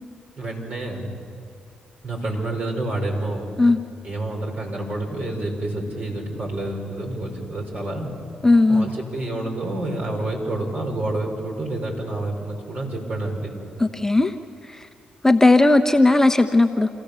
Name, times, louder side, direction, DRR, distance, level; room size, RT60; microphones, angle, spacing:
voice 1, 0.4-1.1 2.0-3.5 4.0-8.1 8.7-13.5, right 2 dB, 50° right, 0 dB, 5.4 m, -28 dB
voice 2, 8.4-8.9 13.8-14.3 15.2-16.9, left 2 dB, 15° left, 7 dB, 1.0 m, -16 dB
28.0 x 15.0 x 7.0 m, 2.3 s
hypercardioid pair, 40°, 3 cm